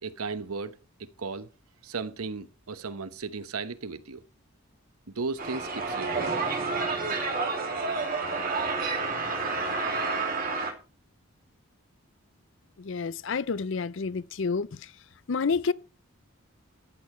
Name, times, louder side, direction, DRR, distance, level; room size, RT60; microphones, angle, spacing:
voice 1, 0.0-1.5 1.8-4.2 5.1-6.4, right 4 dB, 90° right, 1.0 m, -36 dB
sound 1, 5.4-10.7, right 4 dB, 40° right, 2.7 m, -29 dB
voice 2, 12.8-14.7 15.3-15.7, left 5 dB, 60° left, 0.5 m, -29 dB
14.0 x 8.5 x 4.4 m
head